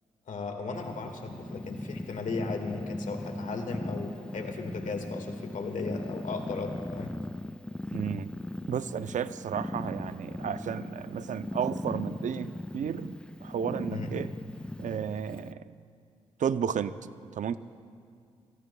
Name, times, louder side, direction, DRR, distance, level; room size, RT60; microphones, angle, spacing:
voice 1, 0.3-7.2 13.9-14.1, left 3 dB, 70° left, 4 dB, 1.8 m, -36 dB
Purr, 0.7-15.5, left 1 dB, 5° left, 0.3 m, -39 dB
voice 2, 7.9-8.4 8.7-14.3 14.8-15.7 16.4-17.0 17.4-17.6, right 8 dB, 65° right, 13 dB, 0.5 m, -33 dB
28.0 x 18.0 x 2.3 m, 2.2 s
supercardioid pair, 45°, 14 cm